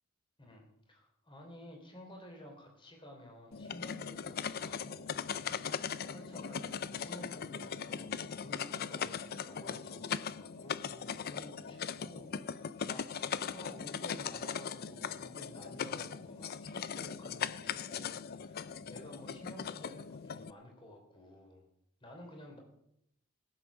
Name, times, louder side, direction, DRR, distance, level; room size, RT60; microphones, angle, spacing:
voice 1, 0.4-9.2 9.4-21.6 22.0-22.6, left 1 dB, 25° left, 2 dB, 3.2 m, -53 dB
sound 1, 3.5-20.5, left 7 dB, 45° left, 0.4 m, -39 dB
18.0 x 7.8 x 6.2 m, 0.75 s
head